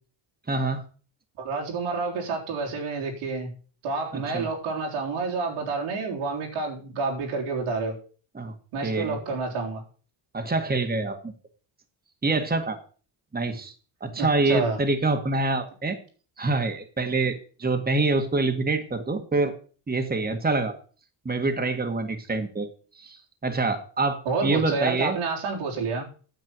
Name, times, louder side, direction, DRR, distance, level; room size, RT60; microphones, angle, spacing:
voice 1, 0.5-0.8 4.1-4.5 8.4-8.5 8.8-9.2 10.3-11.3 12.2-12.8 13.3-13.7 14.0-16.0 16.4-19.5 19.9-20.8 21.3-22.7 23.0-25.2, right 3 dB, 20° right, 5 dB, 1.7 m, -26 dB
voice 2, 1.4-3.5 3.8-8.0 8.7-9.8 14.2-14.8 24.3-26.1, right 4 dB, 90° right, -1 dB, 3.8 m, -29 dB
9.3 x 7.4 x 6.1 m, 0.39 s
cardioid pair, 95°, 50 cm